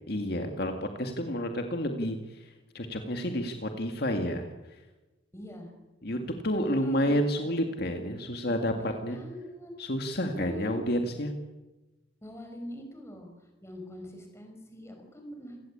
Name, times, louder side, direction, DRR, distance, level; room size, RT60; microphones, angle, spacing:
voice 1, 0.1-0.7 1.0-2.2 2.4-4.5 6.0-6.2 6.4-9.2 9.8-11.3, equal, 55° left, 5 dB, 2.0 m, -30 dB
voice 2, 5.3-5.7 6.6-7.2 8.5-9.8 10.3-10.8 12.2-13.3 13.6-15.6, left 1 dB, 15° left, 4 dB, 5.6 m, -43 dB
28.0 x 17.5 x 8.6 m, 1.1 s
head